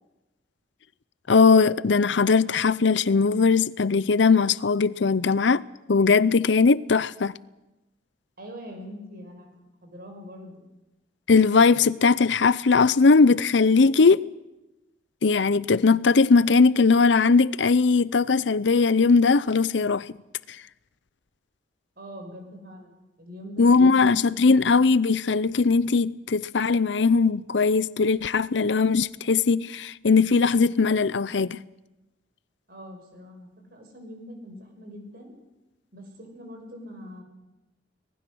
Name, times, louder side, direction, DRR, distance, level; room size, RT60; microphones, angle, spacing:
voice 1, 1.3-5.6 5.9-7.3 11.3-14.2 15.2-20.1 23.6-31.6, left 4 dB, 70° left, 0.6 m, -19 dB
voice 2, 8.4-9.5 9.8-10.7 22.0-24.4 32.7-35.3 35.9-37.2, equal, 55° right, 5.6 m, -43 dB
25.5 x 19.5 x 6.2 m
head